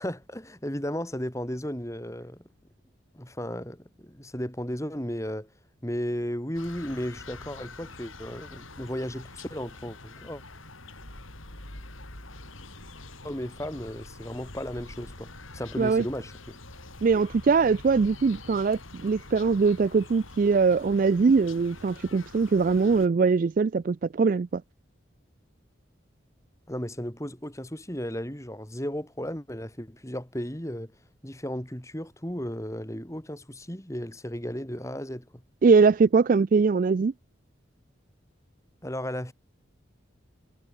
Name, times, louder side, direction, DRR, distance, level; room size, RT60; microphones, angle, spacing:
voice 1, 0.0-2.4 3.1-5.5 5.8-10.4 13.2-16.6 26.7-30.9 31.2-35.3 38.8-39.3, equal, 15° left, 3.0 m, -34 dB
sound 1, 6.5-23.1, left 2 dB, 90° left, 7.4 m, -45 dB
voice 2, 17.0-24.6 35.6-37.1, right 4 dB, 40° right, 0.3 m, -22 dB
head